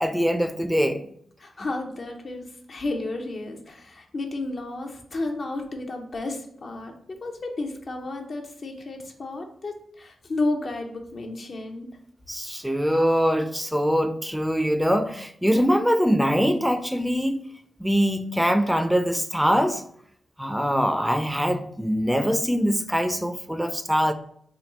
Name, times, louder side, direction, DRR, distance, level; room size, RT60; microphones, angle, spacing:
voice 1, 0.0-1.0 12.3-17.4 17.8-19.8 20.4-24.1, equal, 5° right, 0.4 m, -23 dB
voice 2, 1.4-11.9, left 2 dB, 60° left, 0.7 m, -32 dB
3.4 x 2.2 x 4.0 m
supercardioid pair, 50°, 0 cm